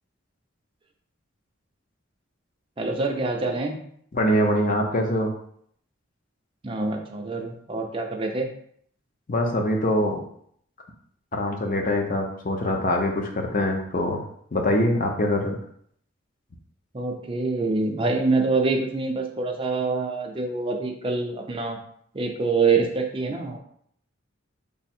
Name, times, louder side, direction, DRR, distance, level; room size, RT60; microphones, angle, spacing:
voice 1, 2.8-3.8 6.6-8.5 16.9-21.8 22.1-23.6, right 3 dB, 25° right, 2 dB, 0.4 m, -25 dB
voice 2, 4.1-5.3 9.3-10.2 11.3-14.2 14.5-15.6, left 1 dB, 40° left, 2 dB, 0.6 m, -23 dB
3.5 x 2.0 x 4.2 m, 0.65 s
head